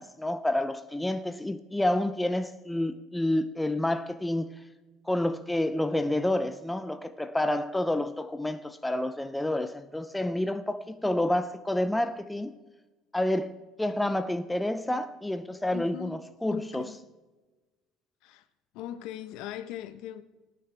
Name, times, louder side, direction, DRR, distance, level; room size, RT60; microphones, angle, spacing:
voice 1, 0.0-4.5 5.1-12.6 13.1-13.5 13.8-16.9, left 1 dB, 5° left, 0.5 m, -29 dB
voice 2, 15.7-16.2 16.5-17.1 18.2-18.5 18.7-20.2, left 11 dB, 65° left, 0.9 m, -40 dB
27.5 x 9.3 x 3.4 m
cardioid pair, 165°, 0 cm